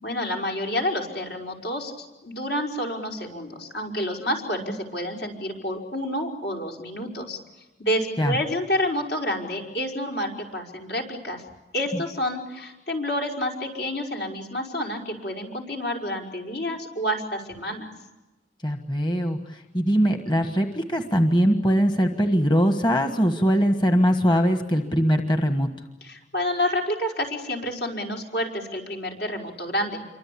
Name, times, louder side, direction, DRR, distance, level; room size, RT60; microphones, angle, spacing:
voice 1, 0.0-7.4 7.8-11.4 11.7-17.9 26.0-30.0, left 1 dB, 70° left, 1 dB, 5.4 m, -29 dB
voice 2, 18.6-25.7, equal, 25° left, 6 dB, 1.5 m, -21 dB
28.0 x 24.5 x 8.6 m, 1.0 s
head